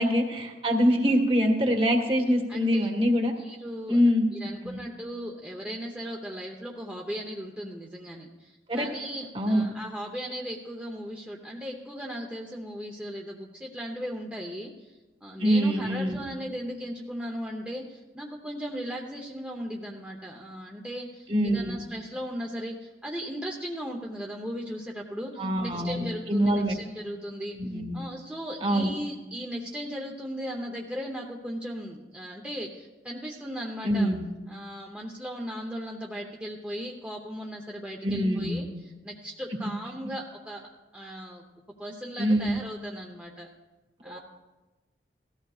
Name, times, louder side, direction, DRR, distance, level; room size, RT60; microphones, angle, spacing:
voice 1, 0.0-3.3 3.9-4.2 4.6-4.8 8.7-8.9 9.3-9.6 15.4-16.2 21.3-21.8 25.4-26.7 27.6-28.0 28.6-28.9 33.8-34.2 38.0-38.6 42.2-42.6 44.0-44.2, equal, 30° right, 3 dB, 1.5 m, -24 dB
voice 2, 2.5-2.9 3.4-4.0 4.3-27.6 27.9-34.1 34.5-41.4 41.8-43.5 44.0-44.2, equal, 5° right, -1 dB, 0.8 m, -37 dB
17.0 x 14.0 x 2.4 m, 1.2 s
head